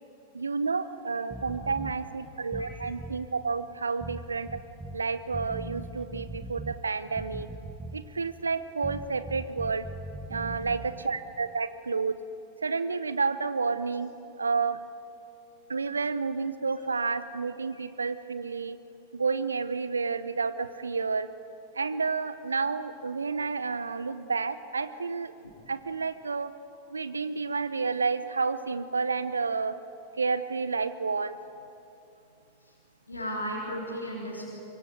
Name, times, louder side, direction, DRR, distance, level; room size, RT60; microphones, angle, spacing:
voice 1, 0.3-4.6 4.9-7.5 7.9-9.9 10.3-12.2 12.6-14.1 14.4-14.8 15.7-18.8 19.1-21.3 21.8-25.3 25.7-26.5 26.9-29.7 30.2-31.4, right 4 dB, 75° right, 14 dB, 0.8 m, -30 dB
sound 1, 1.3-2.0 2.5-3.2 4.0-5.0 5.3-6.8 7.2-8.1 8.8-10.9, right 2 dB, 10° right, 1.4 m, -40 dB
voice 2, 33.1-34.5, equal, 80° left, -3 dB, 3.8 m, -36 dB
24.5 x 23.0 x 9.4 m, 2.7 s
figure-of-eight pair, 90°, 0 cm